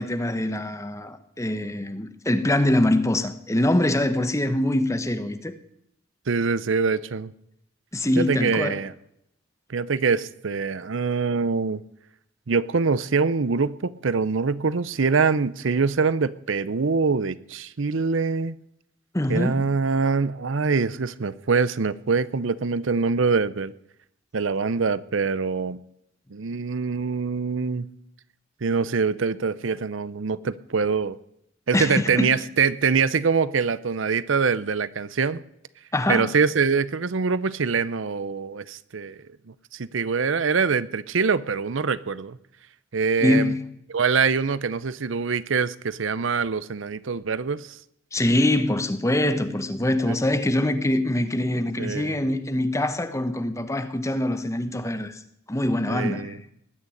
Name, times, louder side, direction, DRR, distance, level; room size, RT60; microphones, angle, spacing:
voice 1, 0.0-5.6 7.9-8.8 19.1-19.7 31.7-32.4 35.9-36.3 43.2-43.6 48.1-55.2 55.5-56.4, left 1 dB, 15° left, 1.0 m, -24 dB
voice 2, 6.3-7.3 8.2-8.9 9.7-11.8 12.5-18.6 19.3-23.7 24.3-25.8 26.3-27.9 28.6-31.2 31.7-35.4 36.1-39.2 39.7-42.4 42.9-43.5 43.9-47.8 50.1-50.2 51.8-52.2 55.9-56.4, right 5 dB, 70° right, 0.6 m, -24 dB
19.5 x 6.7 x 9.8 m
head